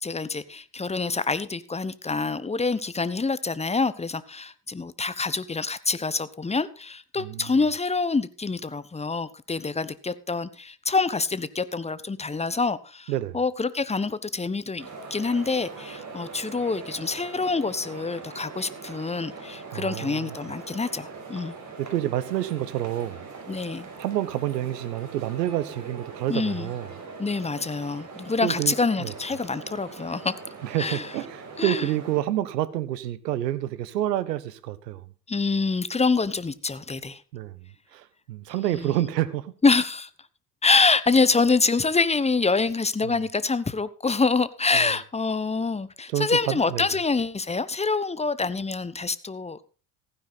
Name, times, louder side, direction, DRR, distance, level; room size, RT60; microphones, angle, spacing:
voice 1, 0.0-21.6 23.5-23.9 26.3-26.7 27.2-30.3 30.8-31.1 31.6-31.9 35.3-37.2 38.7-38.9 39.6-40.1 40.6-49.6, left 4 dB, 15° left, 1.0 m, -26 dB
voice 2, 7.2-7.5 13.1-13.4 19.7-20.4 21.8-23.3 24.0-26.9 28.4-29.1 30.6-35.0 37.3-37.6 37.9-39.5 43.0-43.1 44.7-44.9 46.1-46.9, right 13 dB, 80° right, 1.2 m, -28 dB
sound 1, 14.8-32.2, right 4 dB, 35° right, 5.8 m, -42 dB
15.5 x 10.0 x 4.1 m
hypercardioid pair, 60°, 48 cm